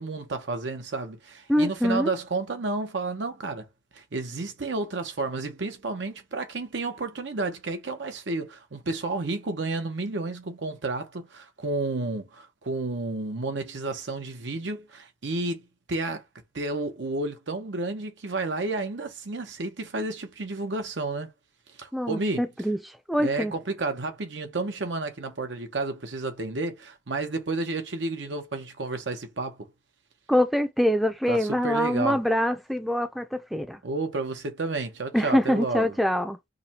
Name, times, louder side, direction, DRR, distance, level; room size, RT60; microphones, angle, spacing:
voice 1, 0.0-3.7 3.9-16.2 16.5-21.3 21.8-22.4 23.2-29.7 31.3-32.2 33.8-36.0, right 3 dB, 85° right, 0.9 m, -31 dB
voice 2, 1.5-2.1 21.9-22.8 23.1-23.5 30.3-33.8 35.1-36.4, equal, ahead, 0.4 m, -24 dB
4.9 x 2.2 x 2.8 m
head